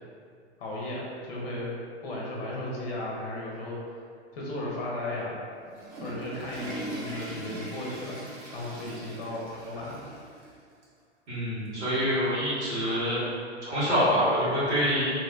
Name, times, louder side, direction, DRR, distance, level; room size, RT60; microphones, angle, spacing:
voice 1, 0.6-3.8 4.3-5.4 6.0-8.2 8.5-10.0, left 1 dB, 55° left, -4 dB, 0.7 m, -35 dB
Water / Toilet flush, 5.5-10.5 10.8-10.9 11.7-11.8 13.0-13.1, right 1 dB, 40° right, 0.7 m, -40 dB
voice 2, 11.3-13.2 13.6-15.1, equal, 75° right, -11 dB, 1.4 m, -26 dB
2.7 x 2.1 x 2.5 m, 2.2 s
figure-of-eight pair, 100°, 35 cm